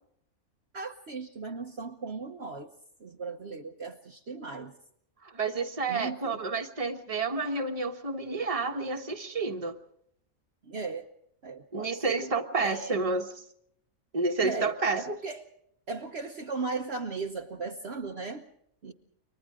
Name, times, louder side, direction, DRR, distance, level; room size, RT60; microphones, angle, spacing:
voice 1, 0.7-2.7 3.0-4.7 5.9-6.4 10.6-11.1 11.4-12.3 12.6-13.0 14.4-15.4 15.9-18.5 18.8-18.9, right 4 dB, 50° right, 2 dB, 1.3 m, -37 dB
voice 2, 5.2-9.8 11.7-13.4 14.1-15.0, right 3 dB, 25° right, 4 dB, 1.5 m, -30 dB
30.0 x 24.0 x 3.7 m, 0.71 s
omnidirectional pair, 1.5 m